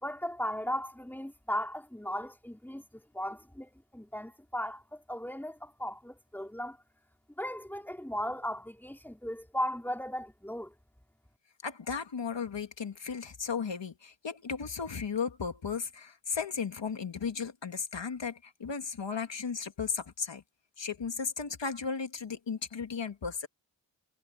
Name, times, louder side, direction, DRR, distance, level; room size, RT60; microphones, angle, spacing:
voice 1, 0.0-6.8 7.4-10.7, equal, 5° left, 3.2 m, -37 dB
voice 2, 11.6-20.4 20.8-23.5, left 5 dB, 90° left, 2.0 m, -35 dB
wide cardioid pair, 50°, 43 cm